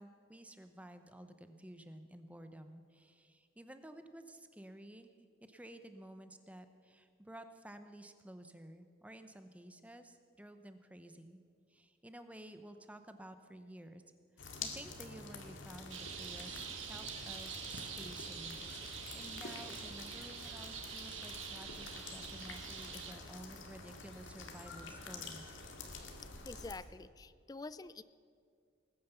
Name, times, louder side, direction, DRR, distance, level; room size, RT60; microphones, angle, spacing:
voice 1, 0.0-5.1 5.4-11.4 11.7-14.0 14.4-25.6, right 1 dB, 5° right, 8 dB, 0.7 m, -53 dB
sound 1, 14.4-26.7, left 4 dB, 80° left, 2.0 m, -48 dB
sound 2, 15.9-23.1, right 7 dB, 85° right, 1.7 m, -46 dB
voice 2, 26.4-28.0, left 3 dB, 20° left, 16 dB, 0.3 m, -47 dB
20.0 x 9.4 x 6.9 m, 2.2 s
head